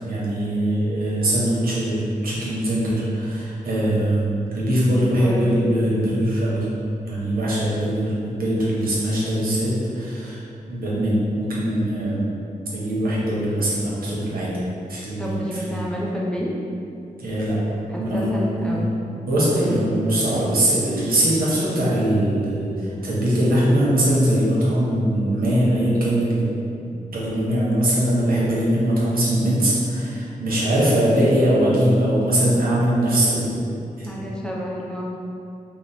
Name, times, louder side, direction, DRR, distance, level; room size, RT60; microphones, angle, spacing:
voice 1, 0.1-6.7 7.1-10.4 10.7-12.3 12.7-14.5 14.9-15.8 17.2-17.6 18.0-18.9 19.3-26.5 26.8-33.6 34.0-34.2, right 1 dB, 75° right, -7 dB, 0.9 m, -21 dB
voice 2, 4.9-5.8 15.2-16.5 17.9-19.0 34.0-35.0, equal, 5° left, -4 dB, 0.5 m, -30 dB
3.0 x 2.0 x 4.0 m, 2.7 s
cardioid pair, 75°, 15 cm